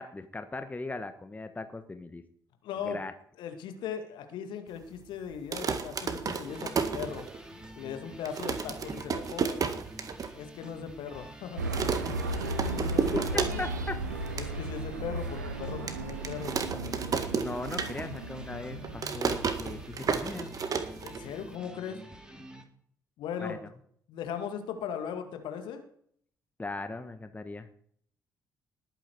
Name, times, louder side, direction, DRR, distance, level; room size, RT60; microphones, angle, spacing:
voice 1, 0.0-2.2 2.8-3.1 13.3-14.0 17.3-20.5 23.4-23.6 26.6-27.7, left 3 dB, 15° left, 9 dB, 1.3 m, -38 dB
voice 2, 2.6-3.0 3.4-7.3 7.8-9.6 10.3-11.6 12.7-13.7 14.3-16.6 21.0-22.0 23.2-23.6 24.1-25.8, left 7 dB, 60° left, 7 dB, 2.1 m, -38 dB
sound 1, 5.3-7.6 8.0-8.1 8.2-10.3 10.7-10.8 11.0-11.3 11.7-13.9 14.2-14.5 15.0-15.1 15.9-18.3 18.6-21.5, right 5 dB, 40° right, 1.9 m, -32 dB
sound 2, 6.5-22.6, equal, 10° right, 3.0 m, -48 dB
sound 3, 11.6-21.2, right 2 dB, 80° right, 1.2 m, -36 dB
20.0 x 9.1 x 4.7 m, 0.62 s
figure-of-eight pair, 45°, 9 cm